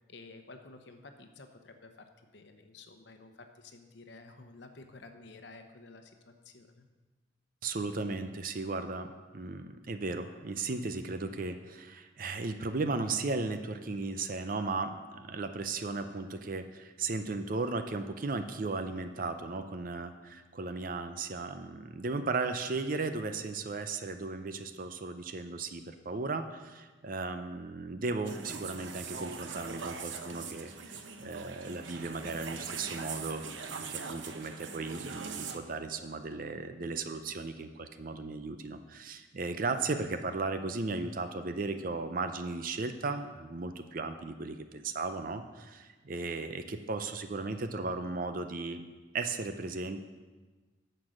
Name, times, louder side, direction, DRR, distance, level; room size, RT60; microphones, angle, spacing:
voice 1, 0.1-6.9, left 3 dB, 65° left, 6 dB, 0.9 m, -52 dB
voice 2, 7.6-30.7 31.2-48.8 49.1-50.1, right 3 dB, 45° right, 9 dB, 0.6 m, -36 dB
sound 1, 28.2-35.6, right 5 dB, 80° right, 0.8 m, -42 dB
9.7 x 6.7 x 6.4 m, 1.3 s
head